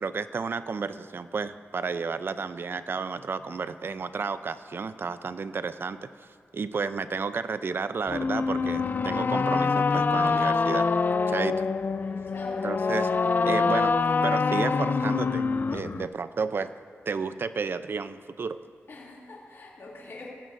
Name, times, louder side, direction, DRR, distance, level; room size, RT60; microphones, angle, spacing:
voice 1, 0.0-6.3 6.5-10.9 11.3-11.7 12.6-14.0 14.2-16.7 17.1-18.6, right 5 dB, 50° right, 12 dB, 0.5 m, -32 dB
sound 1, 8.1-16.1, left 4 dB, 40° left, 0.3 m, -25 dB
voice 2, 12.0-12.7 15.9-16.1 18.9-20.3, left 3 dB, 55° left, -5 dB, 2.8 m, -44 dB
19.0 x 15.0 x 2.6 m, 2.1 s
wide cardioid pair, 90°, 5 cm